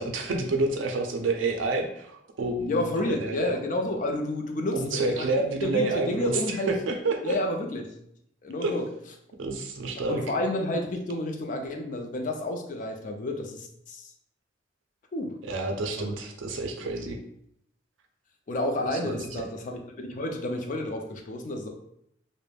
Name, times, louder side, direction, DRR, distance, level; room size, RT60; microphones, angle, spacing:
voice 1, 0.0-3.5 4.7-7.3 8.6-8.8 9.4-10.2 15.5-17.2 18.9-19.4, right 3 dB, 85° right, 4 dB, 0.4 m, -29 dB
voice 2, 2.7-5.2 5.6-6.7 7.2-7.9 8.4-8.8 10.1-14.1 15.1-15.4 16.0-16.1 18.5-21.7, left 1 dB, 45° left, 4 dB, 0.4 m, -30 dB
2.3 x 2.0 x 3.2 m, 0.73 s
head